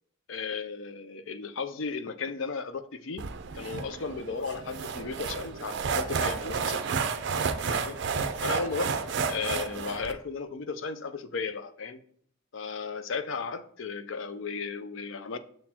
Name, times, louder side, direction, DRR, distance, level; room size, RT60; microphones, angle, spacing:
voice 1, 0.3-3.3 3.5-6.8 7.7-8.0 8.4-9.0 9.3-12.0 12.5-15.4, left 5 dB, 65° left, 11 dB, 0.5 m, -35 dB
sound 1, 3.2-10.1, right 5 dB, 55° right, 0.5 m, -31 dB
6.5 x 4.3 x 4.2 m, 0.63 s
head